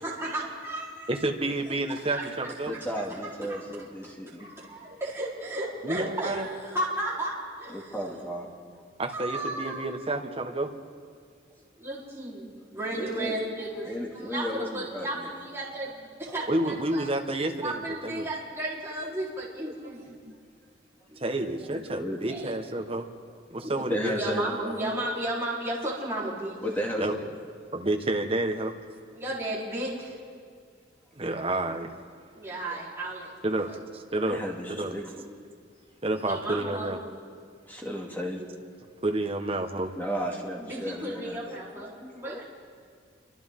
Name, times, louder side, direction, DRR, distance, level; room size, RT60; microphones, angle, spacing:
voice 1, 0.0-1.2 2.1-3.6 4.4-8.2 9.1-9.9 11.8-17.1 17.6-20.0 21.1-21.2 21.6-21.7 22.3-22.5 23.6-23.8 24.1-26.5 29.1-30.2 32.3-33.3 33.7-33.8 36.2-37.0 40.6-42.4, right 1 dB, 15° right, -8 dB, 4.2 m, -34 dB
voice 2, 1.1-2.7 5.8-6.5 9.0-10.7 16.5-18.3 20.3-20.4 21.2-23.1 23.5-24.2 27.0-27.2 27.7-28.7 31.2-31.9 33.4-34.4 34.7-34.9 36.0-37.0 38.4-38.5 39.0-39.9, right 2 dB, 30° right, 3 dB, 1.5 m, -29 dB
voice 3, 2.7-4.5 7.7-8.5 12.9-13.3 13.9-15.3 16.3-16.4 21.9-22.2 23.5-24.4 26.6-27.2 32.5-32.8 34.2-35.1 37.7-38.4 39.9-42.4, equal, 10° left, -2 dB, 2.5 m, -34 dB
29.0 x 25.5 x 3.8 m, 2.1 s
head